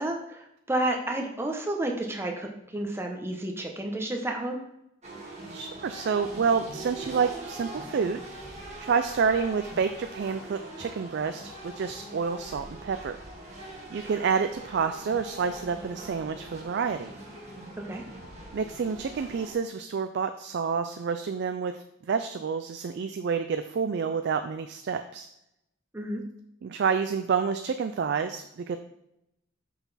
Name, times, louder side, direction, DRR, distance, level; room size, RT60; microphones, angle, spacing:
voice 1, 0.0-4.6 17.9-18.0 25.9-26.2, right 1 dB, 10° right, 2 dB, 0.8 m, -31 dB
sound 1, 5.0-19.5, right 1 dB, 30° right, 1.5 m, -43 dB
voice 2, 5.5-8.4 8.8-13.2 13.9-17.1 18.5-25.3 26.6-28.8, right 6 dB, 55° right, 8 dB, 0.3 m, -29 dB
5.9 x 5.9 x 4.1 m, 0.83 s
head